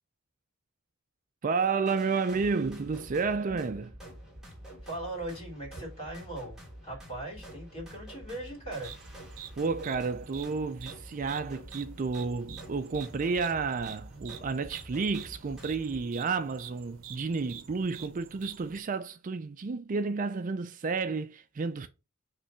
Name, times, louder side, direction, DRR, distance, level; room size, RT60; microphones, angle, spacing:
voice 1, 1.4-3.9 9.6-21.9, right 4 dB, 40° right, 0.4 m, -31 dB
sound 1, 1.9-16.0, equal, ahead, 2.1 m, -48 dB
voice 2, 4.8-6.6 6.8-8.9, right 1 dB, 30° left, 3.1 m, -39 dB
sound 2, 8.8-18.8, right 9 dB, 75° right, 0.7 m, -48 dB
5.6 x 3.4 x 5.5 m
head